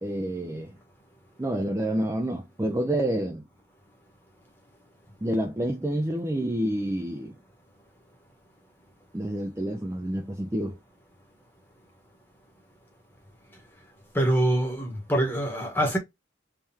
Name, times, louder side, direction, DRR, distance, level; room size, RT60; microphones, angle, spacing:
voice 1, 0.0-0.7 1.4-3.4 5.2-7.3 9.1-10.8, right 1 dB, 15° right, 0.4 m, -28 dB
voice 2, 14.1-16.0, right 1 dB, 10° left, 1.2 m, -24 dB
3.6 x 3.3 x 2.7 m
head